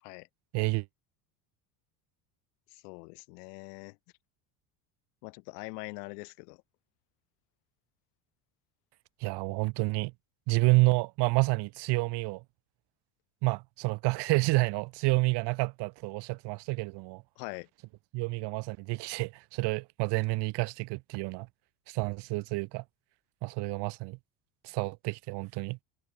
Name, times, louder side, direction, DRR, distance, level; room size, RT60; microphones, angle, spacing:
voice 1, 0.5-0.9 9.2-10.1 10.5-12.4 13.4-17.2 18.1-21.5 21.9-22.8 23.4-24.2 24.6-25.8, right 24 dB, 60° right, 2.6 m, -29 dB
voice 2, 2.7-4.0 5.2-6.6 17.4-17.7, left 30 dB, 90° left, 6.4 m, -43 dB
cardioid pair, 160°, 46 cm